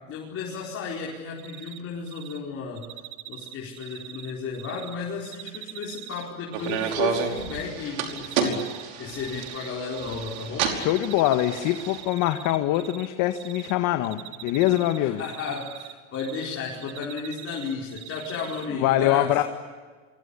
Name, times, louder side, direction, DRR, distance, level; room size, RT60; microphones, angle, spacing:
voice 1, 0.1-2.8 3.3-8.6 9.0-10.7 15.0-19.3, left 5 dB, 35° left, -3 dB, 5.0 m, -33 dB
Cricket, 1.4-1.8 2.1-2.4 2.8-4.9 5.2-6.9 7.3-7.6 8.0-8.8 9.1-10.5 10.7-13.1 13.3-13.7 14.0-16.5 16.8-18.6, right 13 dB, 45° right, 1.9 m, -41 dB
sound 1, 6.5-12.0, right 7 dB, 80° right, 5.2 m, -30 dB
voice 2, 10.7-15.2 18.7-19.4, left 14 dB, 50° left, 7 dB, 1.7 m, -23 dB
28.0 x 24.5 x 8.6 m, 1.5 s
supercardioid pair, 125°, 39 cm